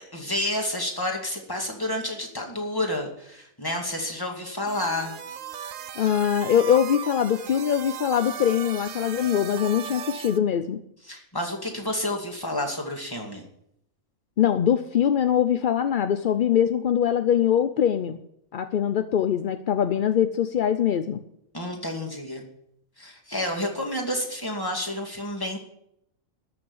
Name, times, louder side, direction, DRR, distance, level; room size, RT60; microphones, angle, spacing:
voice 1, 0.1-5.2 11.0-13.4 21.5-22.4 23.0-25.6, left 1 dB, 15° left, 1 dB, 2.4 m, -30 dB
sound 1, 4.7-10.4, right 9 dB, 65° right, 1.1 m, -37 dB
voice 2, 6.0-10.8 14.4-18.2 18.5-21.2, left 9 dB, 55° left, 10 dB, 0.5 m, -22 dB
13.5 x 6.4 x 9.7 m, 0.75 s
omnidirectional pair, 1.5 m